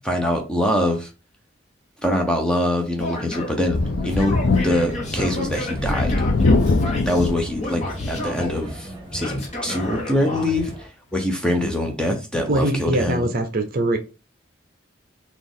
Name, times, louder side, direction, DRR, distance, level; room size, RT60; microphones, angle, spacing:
voice 1, 0.0-1.1 2.0-3.8 4.0-4.3 4.6-6.1 7.1-13.3, left 1 dB, 5° left, 0.6 m, -24 dB
Male speech man speaking / Yell, 3.0-3.6 4.0-7.3 7.6-8.6 9.2-10.5, left 1 dB, 35° left, 1.0 m, -32 dB
Thunder, 3.6-8.7 9.1-9.2 10.6-10.7, left 3 dB, 65° left, 0.4 m, -23 dB
sound 1, 3.7-10.9, right 1 dB, 25° right, 1.3 m, -36 dB
voice 2, 12.5-14.0, right 2 dB, 50° right, 0.6 m, -22 dB
4.1 x 2.4 x 3.5 m
head